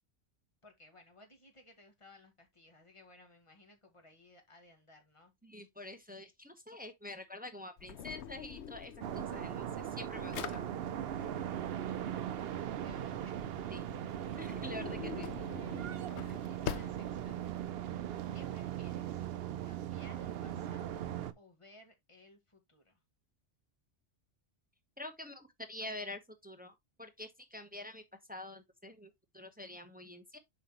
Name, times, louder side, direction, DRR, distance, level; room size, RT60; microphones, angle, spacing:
voice 1, 0.6-5.3 11.5-13.8 14.5-14.6 16.2-17.4 18.3-19.3 19.6-23.0, left 2 dB, 25° left, 1.8 m, -60 dB
voice 2, 5.4-10.7 13.7-13.8 14.4-15.3 25.0-26.7 27.0-28.0 28.3-30.4, left 1 dB, 10° right, 0.8 m, -46 dB
Drawer open or close, 7.8-17.7, left 9 dB, 70° left, 0.9 m, -46 dB
sound 1, 9.0-21.3, right 10 dB, 65° right, 0.8 m, -39 dB
7.5 x 4.9 x 3.0 m
omnidirectional pair, 1.2 m